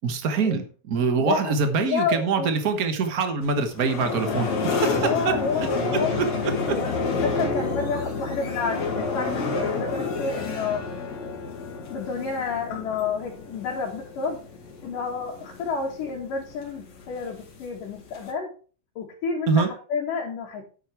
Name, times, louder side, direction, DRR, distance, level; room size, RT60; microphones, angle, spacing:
voice 1, 0.0-4.5 5.2-5.3 6.2-6.3 19.5-19.7, right 5 dB, 60° right, 7 dB, 0.9 m, -24 dB
voice 2, 1.2-1.5 1.8-2.5 4.9-10.8 11.9-14.4 14.8-18.5 19.0-20.7, left 5 dB, 75° left, -4 dB, 3.6 m, -30 dB
sound 1, 3.4-18.3, left 4 dB, 55° left, 3.4 m, -30 dB
10.5 x 8.2 x 4.6 m, 0.37 s
omnidirectional pair, 3.8 m